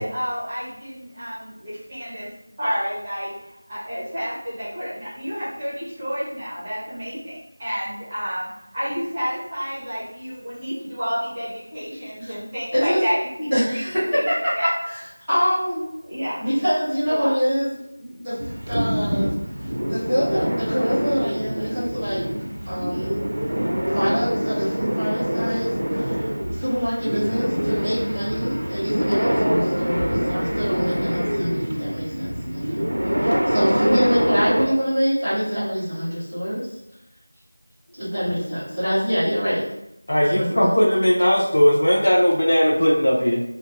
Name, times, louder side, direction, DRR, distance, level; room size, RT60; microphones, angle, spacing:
voice 1, 0.0-2.3 2.6-13.8 14.1-14.2 14.5-14.7 16.0-16.4 17.1-17.3 18.0-18.2, equal, 15° right, -10 dB, 0.6 m, -30 dB
voice 2, 13.5-15.0 15.3-15.9 16.4-17.8 18.2-18.4 18.7-19.4 19.9-22.2 22.6-23.2 23.9-26.2 26.6-32.8 33.2-36.6 38.0-39.6 40.3-40.7, equal, ahead, -16 dB, 1.0 m, -25 dB
sound 1, 18.4-34.7, equal, 85° right, 0.5 m, -25 dB
voice 3, 40.1-43.4, equal, 50° left, -3 dB, 0.5 m, -18 dB
2.4 x 2.1 x 3.0 m, 0.83 s
figure-of-eight pair, 175°, 0 cm